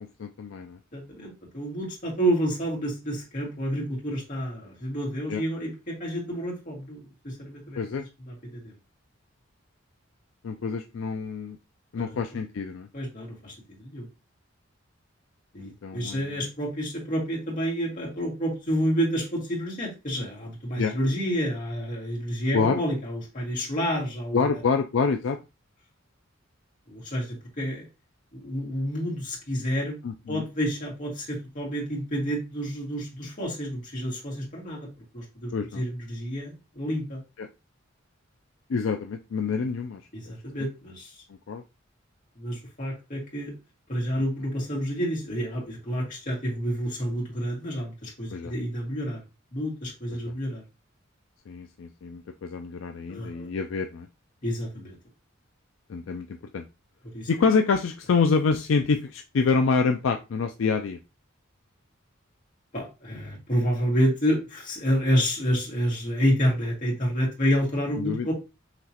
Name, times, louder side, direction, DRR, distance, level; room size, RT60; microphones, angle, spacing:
voice 1, 0.0-0.8 5.3-5.4 7.8-8.1 10.4-11.6 11.9-12.9 15.6-16.5 20.8-20.9 22.5-22.8 24.3-25.4 30.0-30.4 35.5-35.8 37.4-37.5 38.7-40.0 40.3-40.4 40.6-40.7 41.5-41.6 48.3-48.5 50.1-50.3 51.5-54.1 55.9-56.6 57.3-61.0 68.0-68.3, left 5 dB, 70° left, 6 dB, 0.4 m, -27 dB
voice 2, 0.9-7.8 8.3-8.7 12.0-12.2 12.9-14.1 15.5-24.6 26.9-27.9 28.3-30.0 30.3-34.9 35.1-37.2 40.1-41.2 42.4-43.5 43.9-49.2 49.5-50.6 53.1-53.5 54.4-54.9 57.1-57.3 62.7-68.3, equal, 40° left, -3 dB, 2.3 m, -29 dB
5.8 x 3.1 x 2.9 m, 0.27 s
head